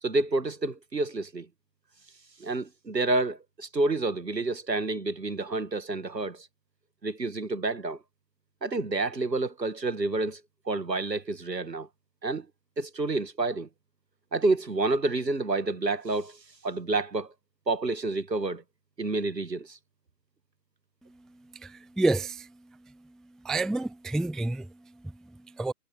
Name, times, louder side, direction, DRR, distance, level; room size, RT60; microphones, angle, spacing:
voice 1, 0.0-1.5 2.4-6.5 7.0-8.0 8.6-11.9 12.2-12.5 12.8-13.7 14.3-17.3 17.7-18.6 19.0-19.8, right 2 dB, 85° right, 1.9 m, -29 dB
voice 2, 21.4-23.1 23.4-25.7, right 2 dB, ahead, 0.4 m, -30 dB
figure-of-eight pair, 150°, 49 cm